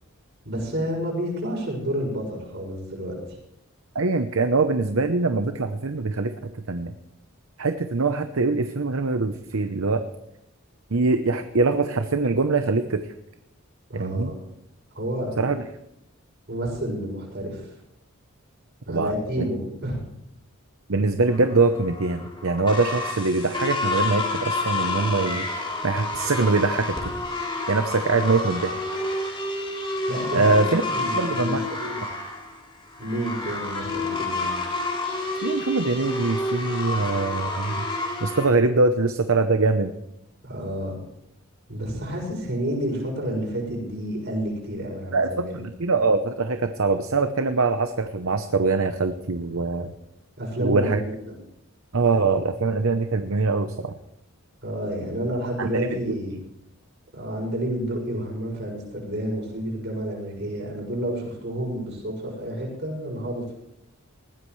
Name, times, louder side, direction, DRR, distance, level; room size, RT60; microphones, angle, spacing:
voice 1, 0.5-3.4 13.9-14.4 14.9-15.6 16.5-17.7 18.9-20.0 30.1-32.0 33.0-34.5 40.4-41.0 41.7-45.6 50.4-51.3 54.6-56.3 57.1-63.5, equal, 50° right, -1 dB, 6.9 m, -30 dB
voice 2, 3.9-6.3 6.7-6.9 7.6-10.0 10.9-13.0 13.9-14.3 15.4-15.6 18.9-19.1 20.9-27.1 27.7-28.7 30.3-30.8 31.2-31.6 35.4-37.9 38.2-39.9 45.1-49.9 50.6-51.0 51.9-53.9 55.6-56.2, right 3 dB, 70° right, 8 dB, 0.8 m, -23 dB
sound 1, 21.3-38.5, left 2 dB, 25° left, 3.5 m, -29 dB
20.0 x 15.5 x 3.2 m, 0.81 s
head